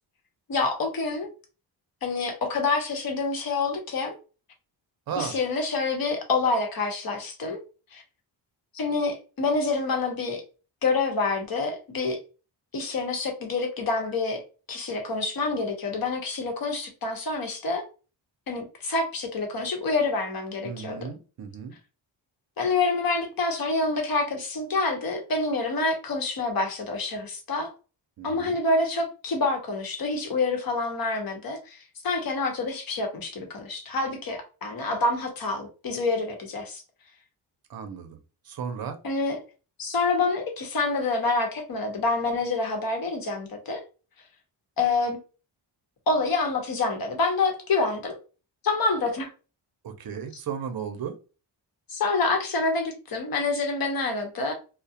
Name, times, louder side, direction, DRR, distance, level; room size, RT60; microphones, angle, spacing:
voice 1, 0.5-1.3 2.0-4.1 5.2-7.6 7.9-8.0 8.7-10.4 10.8-12.2 12.7-14.4 14.7-17.8 18.5-21.1 22.6-27.7 28.2-36.8 39.0-39.4 39.8-43.8 44.8-45.2 46.1-48.2 48.6-49.3 51.9-54.5, left 3 dB, 50° left, 0.9 m, -27 dB
voice 2, 20.6-21.8 28.2-28.6 37.7-38.2 38.4-38.9 49.8-51.2, right 7 dB, 55° right, 0.6 m, -34 dB
2.3 x 2.1 x 2.7 m
cardioid pair, 100°, 44 cm